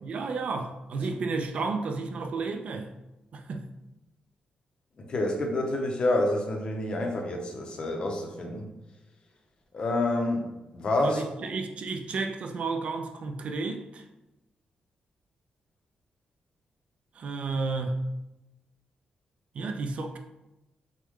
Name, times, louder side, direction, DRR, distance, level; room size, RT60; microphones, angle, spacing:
voice 1, 0.0-2.9 3.3-3.7 11.0-14.0 17.1-18.1 19.5-20.2, right 3 dB, 45° right, 5 dB, 0.4 m, -32 dB
voice 2, 5.0-8.7 9.7-10.5 10.7-11.5, left 2 dB, 35° left, 2 dB, 0.7 m, -28 dB
6.1 x 2.2 x 3.6 m, 0.97 s
wide cardioid pair, 180°, 3 cm